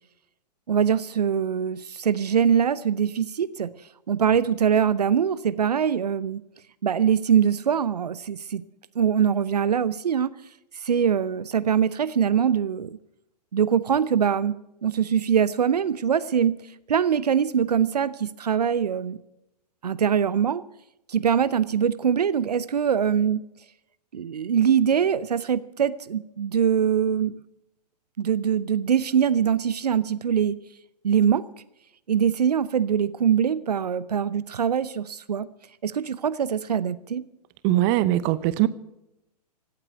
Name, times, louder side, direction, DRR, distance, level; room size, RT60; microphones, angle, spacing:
voice 1, 0.7-3.7 4.1-6.4 6.8-8.6 9.0-10.3 10.8-13.0 13.5-14.5 14.8-16.6 16.9-19.2 19.8-20.6 21.1-23.4 24.1-27.3 28.2-30.6 31.0-31.4 32.1-35.5 35.8-37.2, right 8 dB, 70° right, 17 dB, 0.7 m, -23 dB
voice 2, 37.6-38.7, right 15 dB, 30° right, 17 dB, 0.8 m, -21 dB
17.0 x 8.9 x 9.5 m, 0.85 s
figure-of-eight pair, 115°, 21 cm